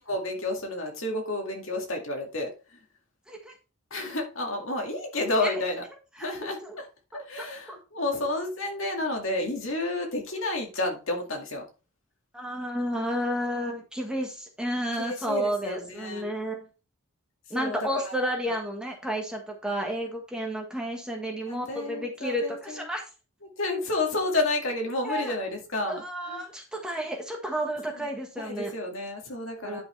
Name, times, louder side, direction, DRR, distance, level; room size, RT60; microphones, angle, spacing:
voice 1, 0.0-2.8 3.9-5.8 6.2-6.9 7.1-11.7 14.9-16.3 17.5-18.1 21.5-22.8 23.4-26.4 28.0-28.1 28.4-29.8, left 2 dB, 60° left, 2 dB, 2.2 m, -31 dB
voice 2, 6.2-6.8 7.7-7.8 12.3-16.7 17.5-23.0 25.0-25.3 25.9-28.7 29.6-29.8, equal, 5° right, 1 dB, 1.4 m, -31 dB
10.0 x 5.9 x 3.3 m, 0.33 s
head